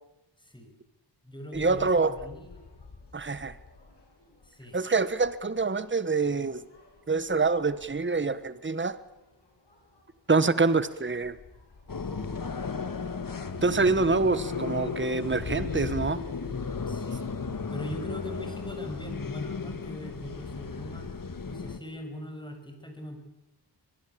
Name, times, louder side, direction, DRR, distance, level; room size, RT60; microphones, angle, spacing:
voice 1, 0.4-0.7 1.2-2.6 4.4-4.8 16.9-17.3 17.7-21.1 21.5-23.2, left 1 dB, 10° left, 4 dB, 7.1 m, -40 dB
sound 1, 1.5-17.0, left 3 dB, 70° left, 7.4 m, -47 dB
voice 2, 1.5-2.2 3.1-3.6 4.7-6.6 7.1-9.0 10.3-11.4 13.6-16.2, right 4 dB, 25° right, 15 dB, 1.3 m, -26 dB
sound 2, 11.9-21.8, left 5 dB, 50° left, 1.8 m, -35 dB
23.5 x 22.0 x 8.6 m, 0.92 s
wide cardioid pair, 85°, 42 cm